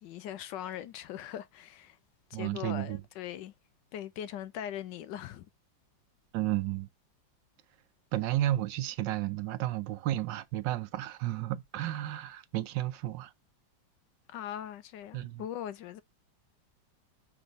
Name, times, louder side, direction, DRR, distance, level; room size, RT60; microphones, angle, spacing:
voice 1, 0.0-2.0 2.3-3.5 3.9-5.5 14.3-16.0, left 10 dB, 80° left, 1.2 m, -40 dB
voice 2, 2.3-3.0 6.3-6.9 8.1-13.3 15.1-15.4, right 14 dB, 80° right, 1.3 m, -32 dB
5.4 x 3.5 x 5.1 m
omnidirectional pair, 2.0 m